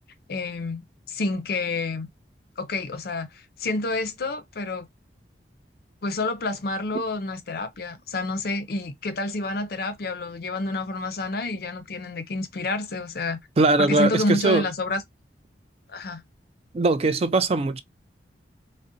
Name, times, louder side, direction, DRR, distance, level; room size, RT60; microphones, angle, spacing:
voice 1, 0.3-2.1 2.6-4.9 6.0-13.4 13.8-15.0 15.9-16.2, left 2 dB, 55° left, 0.5 m, -29 dB
voice 2, 13.6-14.7 16.7-17.8, right 3 dB, 35° right, 0.3 m, -21 dB
3.7 x 2.0 x 2.6 m
head